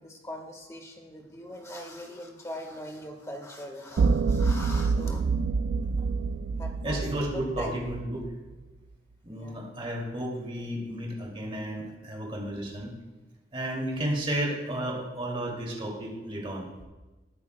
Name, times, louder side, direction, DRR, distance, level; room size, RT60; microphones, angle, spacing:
voice 1, 0.0-5.3 6.6-7.8 9.3-9.7, equal, 15° left, 2 dB, 1.5 m, -41 dB
sound 1, 4.0-8.3, right 4 dB, 70° right, 0.3 m, -27 dB
voice 2, 6.8-8.2 9.2-12.9 13.5-16.7, right 1 dB, 30° right, -1 dB, 2.5 m, -32 dB
21.0 x 9.4 x 2.2 m, 1.2 s
head